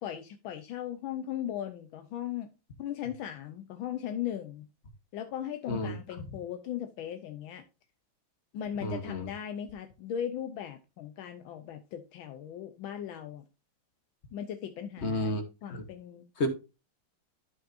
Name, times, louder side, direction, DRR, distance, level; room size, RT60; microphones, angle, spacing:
voice 1, 0.0-2.5 2.8-4.7 5.1-7.6 8.5-13.4 14.3-15.4 15.6-16.3, left 10 dB, 80° left, 1.5 m, -38 dB
voice 2, 5.7-6.0 8.8-9.3 15.0-15.4 15.7-15.8 16.4-16.5, left 1 dB, 40° left, 1.1 m, -31 dB
12.5 x 5.5 x 2.5 m
omnidirectional pair, 2.1 m